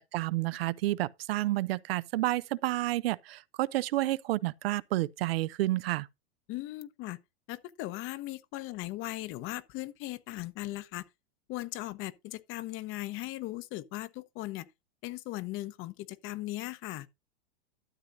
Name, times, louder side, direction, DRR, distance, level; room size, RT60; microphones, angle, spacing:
voice 1, 0.1-6.1, right 16 dB, 75° right, 0.7 m, -30 dB
voice 2, 6.5-7.2 7.5-11.0 11.5-14.7 15.0-17.1, left 17 dB, 45° left, 0.9 m, -38 dB
12.5 x 8.0 x 2.6 m
supercardioid pair, 120°, 30 cm